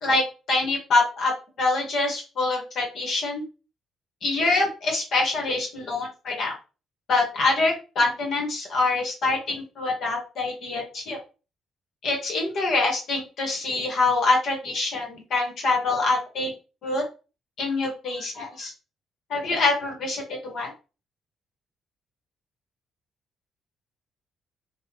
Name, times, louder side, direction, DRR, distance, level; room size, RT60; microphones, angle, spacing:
voice 1, 0.5-1.3 1.6-3.4 4.2-6.5 7.1-11.2 12.0-16.5 16.8-17.0 17.6-18.7 19.3-20.7, left 3 dB, 70° left, 1 dB, 1.6 m, -25 dB
3.5 x 2.7 x 3.0 m, 0.32 s
cardioid pair, 90°, 0 cm